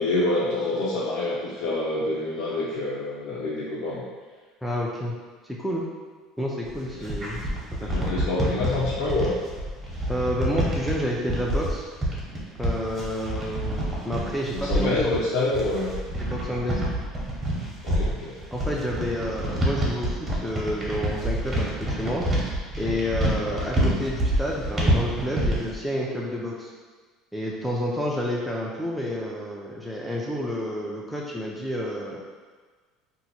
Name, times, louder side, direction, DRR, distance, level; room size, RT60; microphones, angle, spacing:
voice 1, 0.0-4.0 6.9-7.0 7.3-7.4 7.8-9.4 14.5-15.9 17.8-18.3 23.4-23.5, left 2 dB, 80° left, -8 dB, 0.6 m, -27 dB
voice 2, 4.6-5.2 5.4-5.8 6.4-7.4 7.8-8.1 10.1-11.9 12.6-15.1 16.2-16.8 18.5-22.3 22.8-26.7 27.3-32.2, equal, ahead, -4 dB, 0.4 m, -29 dB
sound 1, 6.6-25.8, right 1 dB, 25° right, 0.9 m, -27 dB
2.8 x 2.2 x 4.1 m, 1.5 s
cardioid pair, 125°, 0 cm